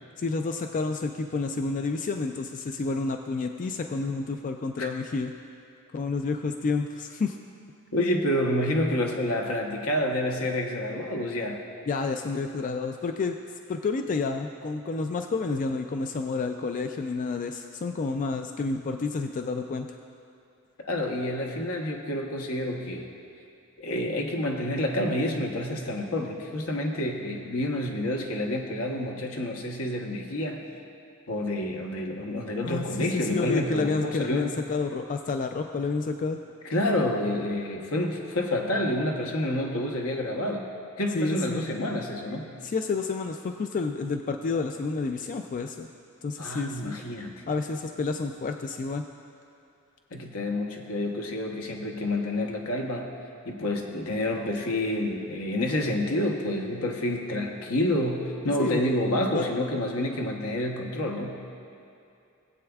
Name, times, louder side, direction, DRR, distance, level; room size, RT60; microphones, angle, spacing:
voice 1, 0.2-5.3 5.9-7.4 11.9-13.4 13.7-19.9 32.6-36.4 41.1-41.6 42.6-45.9 46.2-46.9 47.5-49.0 58.6-58.8 59.3-59.5, left 4 dB, 35° left, 5 dB, 0.3 m, -29 dB
voice 2, 7.9-11.6 20.8-23.1 23.8-30.6 31.3-34.5 36.6-40.7 41.0-42.5 46.4-47.4 50.1-53.1 53.4-61.3, left 1 dB, 80° left, 1 dB, 1.1 m, -28 dB
19.0 x 7.8 x 2.3 m, 2.6 s
head